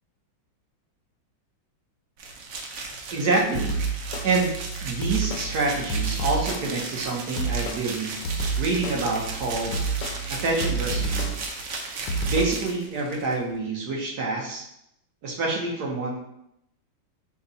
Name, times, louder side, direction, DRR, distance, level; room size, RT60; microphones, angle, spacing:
sound 1, 2.2-13.4, right 3 dB, 80° right, 0.7 m, -36 dB
voice 1, 3.1-3.7 4.2-4.6 4.8-8.2 8.6-9.8 10.3-11.3 12.3-14.6 15.2-16.2, right 3 dB, 60° right, -1 dB, 1.2 m, -27 dB
sound 2, 3.5-12.7, right 3 dB, 75° left, 1.1 m, -29 dB
5.3 x 2.2 x 3.9 m, 0.78 s
omnidirectional pair, 2.2 m